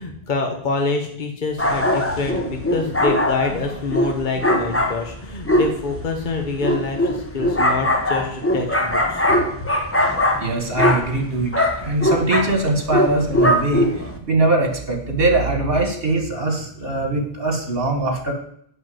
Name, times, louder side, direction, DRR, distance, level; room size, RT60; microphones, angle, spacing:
voice 1, 0.0-9.2, left 3 dB, 50° left, 3 dB, 1.3 m, -26 dB
sound 1, 1.6-14.2, left 1 dB, 15° left, 1.1 m, -21 dB
voice 2, 10.4-18.3, right 2 dB, 65° right, 4 dB, 2.1 m, -22 dB
7.8 x 5.8 x 7.8 m, 0.67 s
omnidirectional pair, 1.1 m